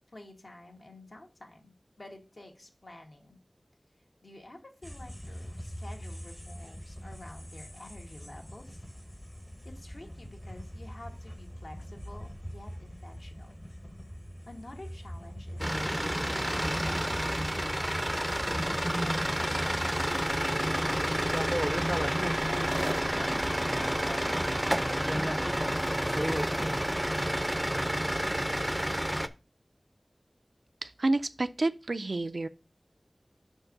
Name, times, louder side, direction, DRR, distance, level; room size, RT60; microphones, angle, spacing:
voice 1, 0.1-3.4 4.2-8.8 9.6-13.6 14.5-21.4 21.7-23.4 23.8-27.4, left 1 dB, 75° left, 1.6 m, -50 dB
sound 1, 4.8-23.2, equal, 25° left, 0.8 m, -43 dB
sound 2, 15.6-29.3, equal, 10° right, 0.5 m, -29 dB
voice 2, 30.8-32.5, right 2 dB, 75° right, 0.4 m, -29 dB
5.8 x 4.5 x 5.2 m
wide cardioid pair, 50°, 0 cm